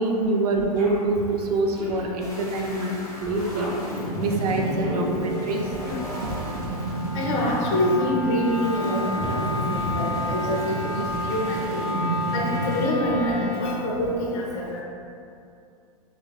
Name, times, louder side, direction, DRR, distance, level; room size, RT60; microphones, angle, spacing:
voice 1, 0.0-3.7 4.2-5.7, right 2 dB, 75° right, 1 dB, 0.4 m, -25 dB
sound 1, 0.8-1.0 1.7-2.0 3.5-3.8 4.8-5.1 5.8-5.9, equal, 45° right, 0.7 m, -36 dB
sound 2, 2.2-12.9, right 1 dB, 15° left, 0.7 m, -32 dB
Wind instrument woodwind instrument, 2.2-13.8, equal, 10° right, 0.9 m, -33 dB
voice 2, 7.1-11.9 12.3-14.8, left 1 dB, 50° left, -3 dB, 0.7 m, -26 dB
3.2 x 2.3 x 2.3 m, 2.5 s
hypercardioid pair, 125°, 20 cm